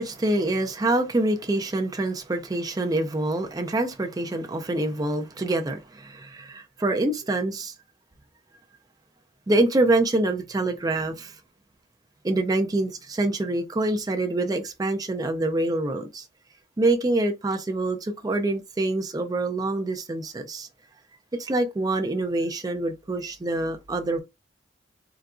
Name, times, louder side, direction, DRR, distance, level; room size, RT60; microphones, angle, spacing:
voice 1, 0.0-7.7 9.5-11.3 12.2-16.2 16.8-20.7 21.4-24.2, right 2 dB, 20° right, 0.4 m, -26 dB
3.8 x 2.3 x 2.4 m
head